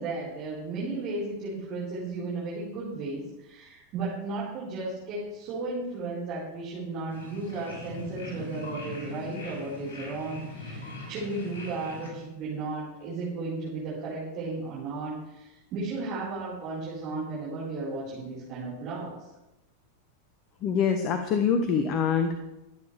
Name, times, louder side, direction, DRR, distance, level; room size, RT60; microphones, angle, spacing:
voice 1, 0.0-19.3, right 3 dB, 35° right, -7 dB, 4.9 m, -34 dB
sound 1, 7.1-12.1, left 2 dB, 60° left, 6.4 m, -41 dB
voice 2, 20.6-22.4, left 6 dB, 35° left, 8 dB, 1.1 m, -25 dB
23.5 x 9.4 x 3.5 m, 0.95 s
figure-of-eight pair, 90°, 0 cm